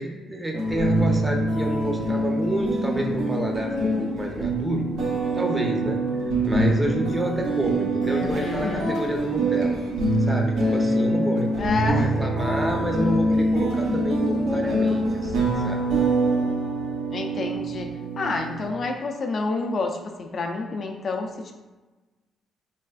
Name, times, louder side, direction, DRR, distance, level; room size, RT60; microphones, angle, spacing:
voice 1, 0.0-4.9 5.3-6.0 6.5-9.8 10.2-11.5 11.8-15.8, right 1 dB, 15° right, 1 dB, 0.6 m, -29 dB
Acoustic guitar in B minor - A major, 0.5-18.7, right 1 dB, 85° right, 0.6 m, -24 dB
Drum, 5.8-7.5, right 1 dB, 55° right, 1.1 m, -42 dB
voice 2, 8.0-9.0 11.6-12.2 17.1-17.9 18.2-21.5, left 3 dB, 50° left, 3 dB, 0.3 m, -29 dB
3.3 x 3.1 x 2.3 m, 1.2 s
cardioid pair, 90°, 0 cm